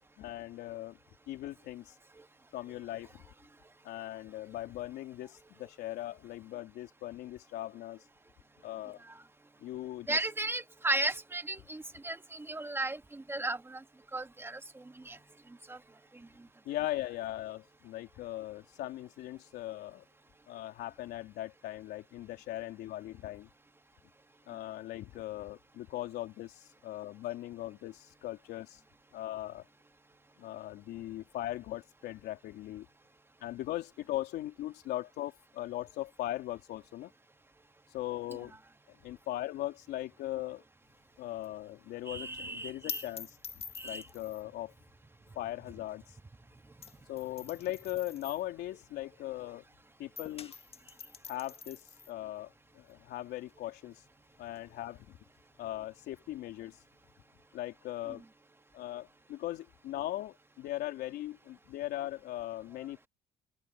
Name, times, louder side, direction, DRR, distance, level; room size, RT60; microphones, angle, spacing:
voice 1, 0.2-1.0 1.3-1.9 2.5-3.2 3.8-8.0 8.6-9.0 9.6-10.2 16.7-20.0 20.5-23.5 24.5-28.8 29.1-29.6 30.4-32.9 33.4-37.1 37.9-38.6 38.9-40.6 41.2-43.4 43.8-44.7 45.4-46.0 47.1-49.6 50.0-50.5 51.3-54.0 54.4-55.2 55.6-56.8 57.5-58.2 58.7-63.1, left 14 dB, 80° left, 3.5 m, -39 dB
voice 2, 10.1-13.8 14.1-14.6 15.0-15.2 15.7-15.8 42.1-43.0 43.8-44.1 62.8-62.9, right 2 dB, 15° right, 1.5 m, -35 dB
sound 1, 40.8-49.7 50.0-57.2, left 6 dB, 35° left, 1.7 m, -48 dB
open air
cardioid pair, 110°, 17 cm